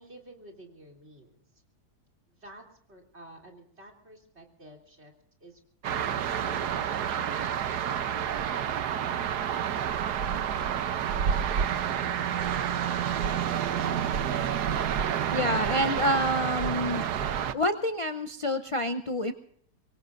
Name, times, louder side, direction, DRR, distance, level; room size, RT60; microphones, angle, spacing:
voice 1, 0.0-1.6 2.3-2.6 2.9-5.1 5.4-5.6, right 1 dB, 40° right, 2 dB, 3.5 m, -51 dB
sound 1, 5.8-17.5, right 8 dB, 75° right, 1.4 m, -29 dB
voice 2, 15.3-17.1 17.5-19.3, left 1 dB, 60° left, 7 dB, 0.3 m, -28 dB
25.0 x 22.5 x 2.6 m, 0.65 s
omnidirectional pair, 1.8 m